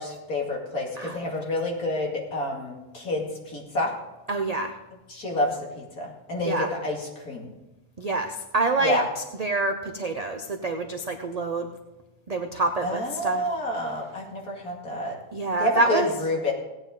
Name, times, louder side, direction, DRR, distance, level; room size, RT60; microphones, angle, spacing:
voice 1, 0.0-3.9 5.1-7.5 8.8-9.1 12.8-15.2 15.6-16.5, left 1 dB, 75° left, -2 dB, 2.9 m, -29 dB
voice 2, 4.3-4.7 6.4-6.7 8.0-11.7 12.3-13.4 15.3-16.1, right 2 dB, 40° right, 4 dB, 0.6 m, -27 dB
17.5 x 9.0 x 3.8 m, 1.0 s
omnidirectional pair, 1.6 m